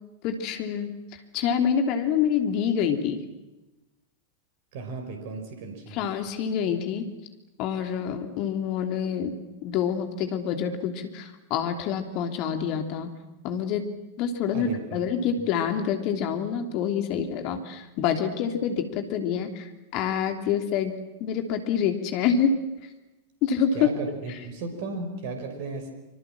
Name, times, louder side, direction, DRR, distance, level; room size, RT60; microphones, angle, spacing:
voice 1, 0.2-3.2 5.9-7.1 7.6-13.1 13.4-13.9 14.2-22.6 23.4-23.9, left 7 dB, 40° left, 6 dB, 3.1 m, -27 dB
voice 2, 4.7-6.1 14.5-15.0 23.7-25.9, right 3 dB, 50° right, 6 dB, 5.5 m, -35 dB
27.0 x 26.0 x 7.6 m, 1.1 s
figure-of-eight pair, 90°, 0 cm